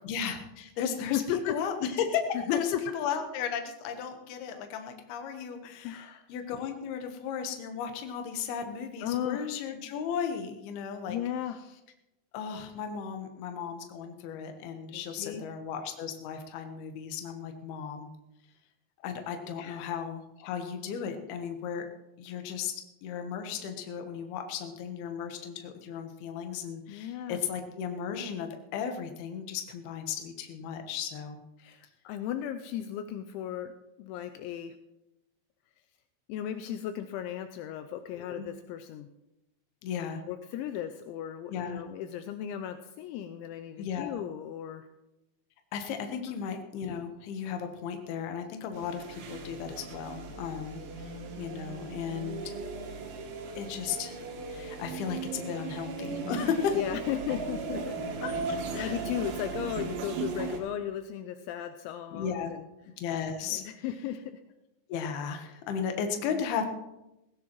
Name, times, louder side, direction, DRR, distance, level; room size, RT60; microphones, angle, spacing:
voice 1, 0.0-1.2 1.5-2.2 2.5-11.2 12.3-18.1 19.0-21.9 22.2-22.7 23.0-31.4 38.3-38.5 39.8-40.2 41.5-41.8 43.8-44.2 45.7-52.6 53.6-56.8 58.2-59.0 62.1-62.5 63.0-63.6 64.9-66.7, left 7 dB, 70° left, 6 dB, 2.5 m, -35 dB
voice 2, 1.1-1.6 2.3-2.8 5.8-6.3 9.0-9.5 11.1-11.6 14.9-15.4 19.6-19.8 26.9-27.4 31.6-33.7 34.0-34.7 36.3-39.1 40.3-44.9 46.2-46.3 55.4-55.7 56.7-58.2 58.7-62.7 63.4-64.4 66.3-66.4, left 10 dB, 85° left, 7 dB, 2.6 m, -36 dB
sound 1, 48.7-60.6, right 4 dB, 85° right, 4.6 m, -37 dB
18.0 x 16.5 x 3.0 m, 0.94 s
omnidirectional pair, 5.9 m